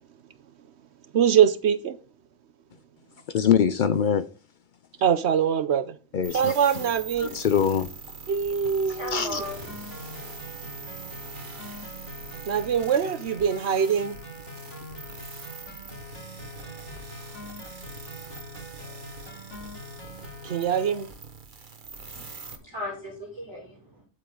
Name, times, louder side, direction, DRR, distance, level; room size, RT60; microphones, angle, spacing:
voice 1, 1.1-2.0 5.0-6.0 6.3-7.3 8.3-9.4 12.5-14.2 20.4-21.1, right 8 dB, 60° right, 0.8 m, -23 dB
voice 2, 3.3-4.3 6.1-6.6 7.2-7.9 9.1-9.4, left 8 dB, 85° left, 0.4 m, -23 dB
sound 1, 6.2-22.5, right 5 dB, 35° right, 1.4 m, -43 dB
voice 3, 8.9-10.3 11.4-11.7 12.1-12.3 22.1-24.0, left 1 dB, 20° right, 2.9 m, -38 dB
sound 2, 9.4-20.9, left 1 dB, 55° left, 3.2 m, -43 dB
9.6 x 8.0 x 3.8 m
omnidirectional pair, 1.5 m